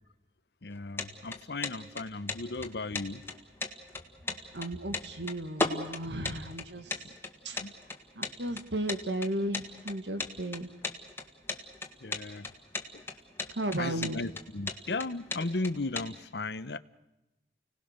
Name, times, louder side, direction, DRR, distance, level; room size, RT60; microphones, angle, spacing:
voice 1, 0.6-3.2 7.0-7.1 7.6-7.7 12.0-12.5 12.9-13.0 13.8-16.8, left 3 dB, 75° left, 15 dB, 0.9 m, -36 dB
sound 1, 0.7-16.1, left 3 dB, 15° left, 1.8 m, -36 dB
voice 2, 4.5-7.0 7.4-7.6 8.2-10.7 13.5-14.2, right 1 dB, 90° right, 9 dB, 1.9 m, -34 dB
30.0 x 18.5 x 6.6 m, 0.92 s
head